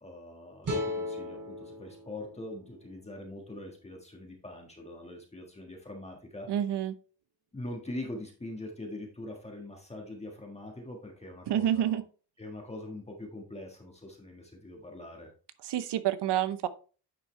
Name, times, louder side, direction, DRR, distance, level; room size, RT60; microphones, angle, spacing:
voice 1, 0.0-6.5 7.5-12.0 12.4-15.3, left 1 dB, 15° left, 1 dB, 1.5 m, -43 dB
sound 1, 0.6-3.8, left 1 dB, 50° right, 2.7 m, -38 dB
voice 2, 6.5-6.9 11.5-12.0 15.6-16.7, right 11 dB, 80° right, 14 dB, 0.8 m, -28 dB
9.4 x 5.5 x 3.2 m, 0.38 s
wide cardioid pair, 150°, 40 cm